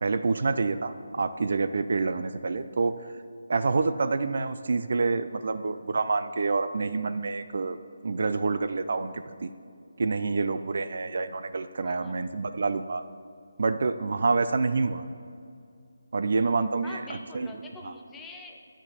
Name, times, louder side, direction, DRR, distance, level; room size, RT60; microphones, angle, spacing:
voice 1, 0.0-3.0 3.5-7.8 8.0-9.5 10.0-13.0 13.6-15.0 16.1-17.0 17.3-17.5, right 4 dB, 60° right, 11 dB, 0.4 m, -27 dB
voice 2, 11.8-12.2 16.8-18.6, left 3 dB, 10° left, 1 dB, 0.6 m, -44 dB
9.6 x 7.2 x 4.0 m, 2.4 s
figure-of-eight pair, 165°, 0 cm